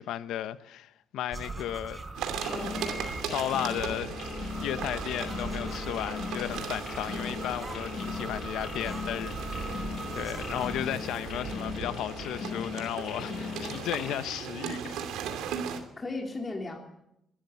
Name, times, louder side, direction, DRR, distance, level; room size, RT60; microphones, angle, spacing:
voice 1, 0.0-2.0 3.2-4.1 4.6-9.8 10.1-15.0, left 12 dB, 85° left, 0.8 m, -34 dB
sound 1, 1.3-3.2 4.2-10.8, right 3 dB, 20° right, 3.9 m, -40 dB
sound 2, 2.1-15.8, right 7 dB, 90° right, 2.6 m, -38 dB
sound 3, 2.3-14.1, left 6 dB, 55° left, 0.9 m, -39 dB
voice 2, 2.5-2.8 15.6-16.8, left 3 dB, 25° left, 3.3 m, -37 dB
23.0 x 13.0 x 9.4 m
cardioid pair, 90°, 0 cm